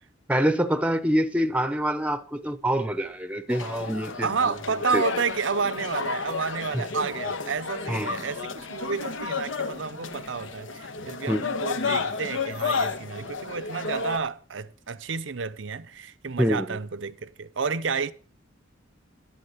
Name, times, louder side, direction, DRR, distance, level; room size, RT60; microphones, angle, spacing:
voice 1, 0.3-4.3 4.9-5.0 6.7-6.8 7.9-8.2 11.3-11.4 16.4-16.8, equal, 5° right, 0.7 m, -25 dB
sound 1, 3.5-14.2, left 4 dB, 85° left, 1.2 m, -32 dB
voice 2, 4.2-18.1, right 5 dB, 75° right, 0.7 m, -30 dB
11.5 x 11.5 x 5.7 m
head